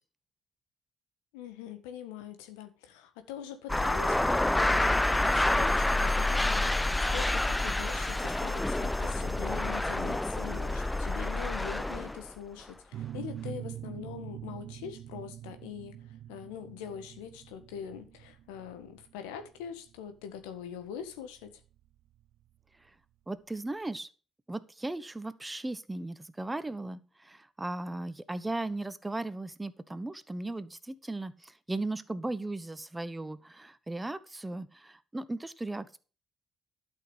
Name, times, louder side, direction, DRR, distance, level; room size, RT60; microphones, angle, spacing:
voice 1, 1.3-21.6, left 8 dB, 80° left, 1.6 m, -43 dB
sound 1, 3.7-12.3, left 2 dB, 10° left, 0.6 m, -28 dB
sound 2, 12.9-22.3, right 12 dB, 65° right, 0.4 m, -44 dB
voice 2, 23.3-24.1 24.5-36.0, right 2 dB, 15° right, 1.1 m, -37 dB
12.0 x 6.4 x 5.5 m
hypercardioid pair, 50°, 0 cm